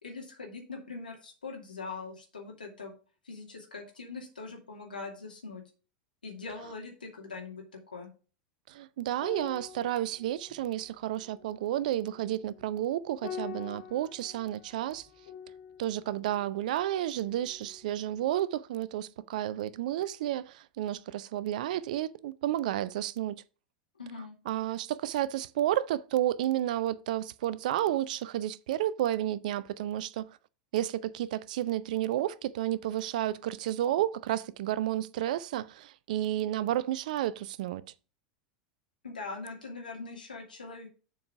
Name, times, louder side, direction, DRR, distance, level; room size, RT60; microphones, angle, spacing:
voice 1, 0.0-2.9 3.2-5.6 6.2-7.6 7.9-8.1 24.0-24.3 39.0-40.9, left 4 dB, 85° left, 2.5 m, -42 dB
voice 2, 8.7-15.1 15.8-23.4 24.5-30.3 30.7-37.8, right 12 dB, 65° right, 0.5 m, -31 dB
sound 1, 9.1-17.9 18.2-18.4, left 8 dB, 55° left, 2.0 m, -47 dB
7.1 x 4.8 x 5.9 m
figure-of-eight pair, 85°, 5 cm